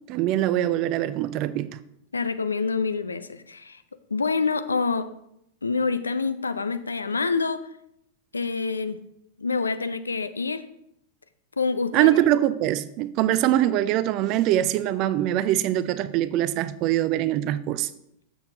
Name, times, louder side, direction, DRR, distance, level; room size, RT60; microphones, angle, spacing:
voice 1, 0.1-1.8 11.9-17.9, right 13 dB, 40° right, 0.4 m, -23 dB
voice 2, 2.1-3.8 4.1-5.1 5.6-7.6 8.3-9.0 9.4-10.6 11.6-12.1, left 4 dB, 75° left, 0.4 m, -26 dB
6.9 x 6.2 x 3.9 m
figure-of-eight pair, 90°, 0 cm